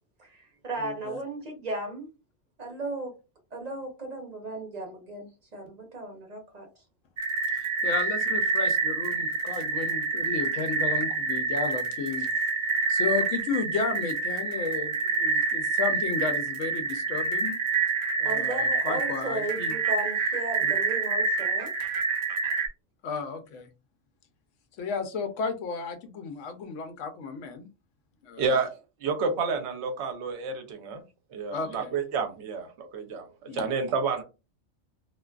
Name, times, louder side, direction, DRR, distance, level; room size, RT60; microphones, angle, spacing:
voice 1, 0.2-2.1 2.6-3.1 3.5-6.7 18.2-21.7, right 2 dB, 40° right, 0.8 m, -35 dB
voice 2, 0.8-1.2 7.5-12.3 12.9-17.6 18.2-19.8 20.6-20.8 23.0-23.7 24.8-27.7 28.2-28.6 31.5-31.9 33.5-33.7, left 5 dB, 75° left, 0.9 m, -33 dB
sound 1, 7.2-22.7, right 4 dB, 80° right, 0.3 m, -27 dB
voice 3, 28.4-31.0 31.3-34.2, right 4 dB, 65° right, 0.9 m, -30 dB
2.5 x 2.3 x 2.2 m
omnidirectional pair, 1.3 m